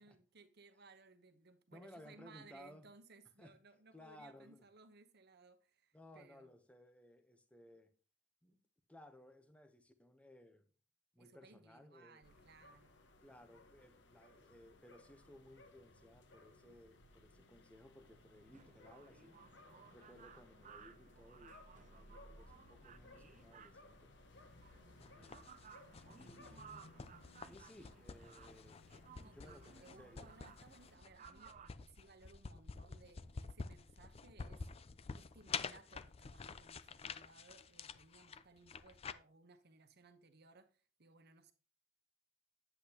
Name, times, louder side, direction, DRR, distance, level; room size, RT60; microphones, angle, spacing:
voice 1, 0.0-6.5 11.2-12.9 24.8-25.1 29.2-34.7 35.2-41.5, right 3 dB, 55° right, 1.1 m, -63 dB
voice 2, 1.7-2.9 3.4-3.5 3.9-4.6 5.9-7.9 8.4-8.6 8.9-10.7 11.1-12.2 13.2-19.4 19.9-24.1 25.1-25.8 26.2-26.9 27.5-28.8 29.3-30.3, left 1 dB, 5° left, 0.8 m, -60 dB
sound 1, 12.2-31.0, left 2 dB, 65° left, 1.2 m, -62 dB
sound 2, 18.4-31.7, right 7 dB, 40° right, 0.5 m, -61 dB
sound 3, 25.0-39.1, left 5 dB, 30° left, 0.4 m, -49 dB
9.9 x 8.1 x 2.9 m
head